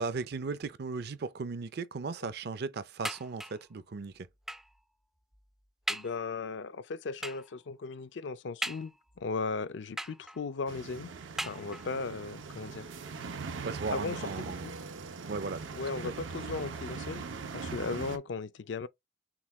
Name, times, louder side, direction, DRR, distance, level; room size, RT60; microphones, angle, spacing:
voice 1, 0.0-4.3 13.6-14.7 15.3-15.6 16.0-16.2, right 4 dB, 55° right, 0.5 m, -37 dB
sound 1, 3.0-3.7 4.5-4.8 5.3-5.4 5.9-6.2 7.2-7.6 8.6-9.2 10.0-10.6 11.4-12.1 12.9-13.0 13.3-13.4, right 1 dB, ahead, 0.3 m, -39 dB
voice 2, 5.9-11.1 11.4-12.9 13.9-14.7 15.7-17.2 17.5-18.9, left 4 dB, 70° left, 0.5 m, -37 dB
sound 2, 10.7-18.2, right 4 dB, 90° right, 0.7 m, -41 dB
6.0 x 2.3 x 3.1 m
head